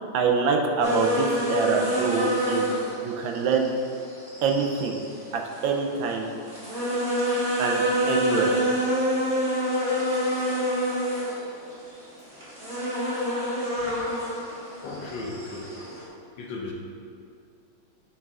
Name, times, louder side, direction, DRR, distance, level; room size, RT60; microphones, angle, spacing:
voice 1, 0.1-3.7 4.4-5.0 5.3-6.3 7.6-8.5, right 5 dB, 80° right, 2 dB, 1.4 m, -25 dB
sound 1, 0.8-16.0, equal, 35° right, 1.9 m, -27 dB
voice 2, 14.8-16.0 16.4-16.7, left 3 dB, 70° left, -1 dB, 1.5 m, -36 dB
7.4 x 4.8 x 3.6 m, 2.5 s
omnidirectional pair, 2.2 m